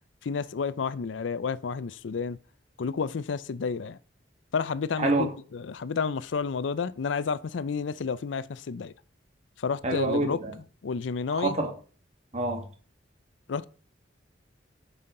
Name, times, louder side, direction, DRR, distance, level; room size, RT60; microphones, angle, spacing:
voice 1, 0.2-2.4 2.8-4.0 4.5-8.9 9.6-10.4 10.8-11.6 13.5-13.7, left 5 dB, 90° left, 0.5 m, -30 dB
voice 2, 9.8-10.5 11.4-11.7 12.3-12.6, right 2 dB, 35° right, 1.7 m, -26 dB
9.7 x 5.6 x 3.8 m
head